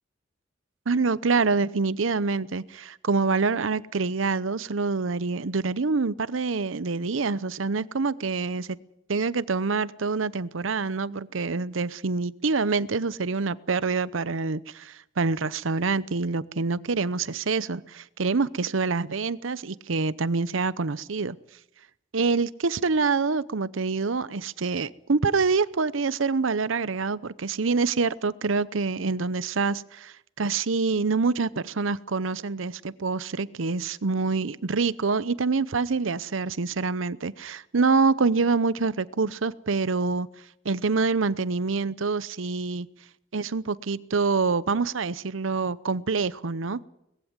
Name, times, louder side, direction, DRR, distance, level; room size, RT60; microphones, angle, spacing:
voice 1, 0.9-8.8 9.1-21.4 22.1-40.3 40.6-42.9 43.3-46.8, right 4 dB, 80° right, 18 dB, 0.8 m, -26 dB
20.5 x 15.5 x 9.5 m, 0.81 s
head